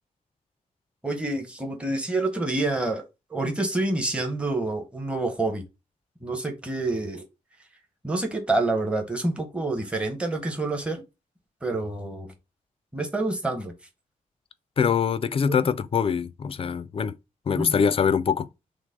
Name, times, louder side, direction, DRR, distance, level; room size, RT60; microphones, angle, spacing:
voice 1, 1.0-3.0 3.3-5.6 6.2-7.2 8.0-11.0 11.6-12.3 12.9-13.7 15.5-15.7 17.5-17.8, right 2 dB, 10° right, 0.9 m, -27 dB
voice 2, 14.8-17.1 17.5-18.5, left 7 dB, 40° left, 0.3 m, -23 dB
6.0 x 2.0 x 3.6 m
wide cardioid pair, 165°, 14 cm